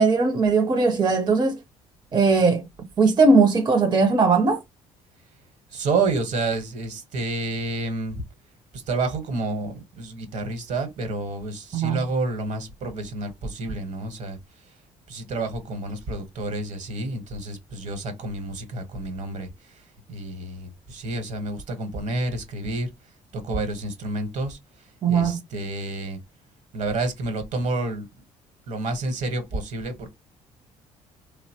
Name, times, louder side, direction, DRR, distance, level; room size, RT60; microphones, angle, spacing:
voice 1, 0.0-1.6 2.1-2.7 3.0-4.6 11.7-12.0 25.0-25.4, right 4 dB, 30° right, 0.6 m, -19 dB
voice 2, 5.7-8.2 8.7-14.4 15.1-19.8 20.1-22.9 23.3-24.6 25.1-26.2 26.7-28.1 28.7-30.1, right 2 dB, 65° right, 1.0 m, -29 dB
2.8 x 2.0 x 2.8 m
supercardioid pair, 70°, 13 cm